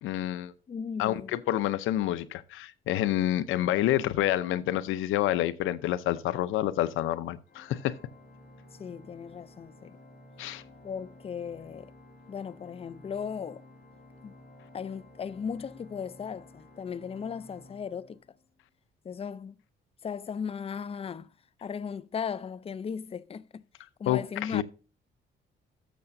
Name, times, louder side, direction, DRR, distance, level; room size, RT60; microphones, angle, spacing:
voice 1, 0.0-0.5 1.0-8.0 10.4-10.6 24.1-24.6, left 13 dB, 90° left, 0.7 m, -28 dB
voice 2, 0.7-1.3 8.8-10.0 10.8-11.9 12.3-13.6 14.2-14.3 14.7-18.2 19.0-19.6 20.0-21.3 21.6-23.6 24.0-24.6, left 6 dB, 30° left, 0.4 m, -37 dB
Organ, 7.5-18.6, left 1 dB, 55° left, 3.9 m, -53 dB
13.0 x 6.6 x 2.6 m
cardioid pair, 90°, 20 cm